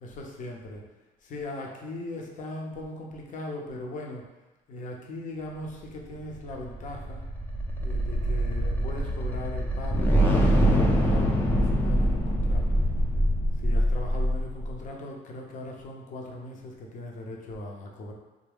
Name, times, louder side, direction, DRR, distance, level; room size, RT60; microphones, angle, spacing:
voice 1, 0.0-0.8 1.2-4.3 4.7-7.2 7.8-12.7 13.6-18.1, left 1 dB, 50° left, 0 dB, 0.6 m, -39 dB
sound 1, 6.4-14.8, equal, 10° left, 0.5 m, -24 dB
3.5 x 2.1 x 3.5 m, 1.1 s
cardioid pair, 110°, 17 cm